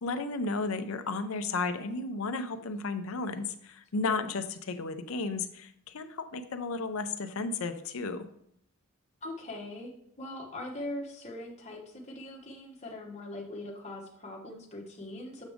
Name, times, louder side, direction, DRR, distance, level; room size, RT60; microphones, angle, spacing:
voice 1, 0.0-8.3, left 3 dB, 70° left, 10 dB, 0.5 m, -33 dB
voice 2, 9.2-9.9 10.2-15.4, left 1 dB, 30° left, -2 dB, 1.1 m, -41 dB
7.2 x 5.0 x 3.5 m, 0.70 s
head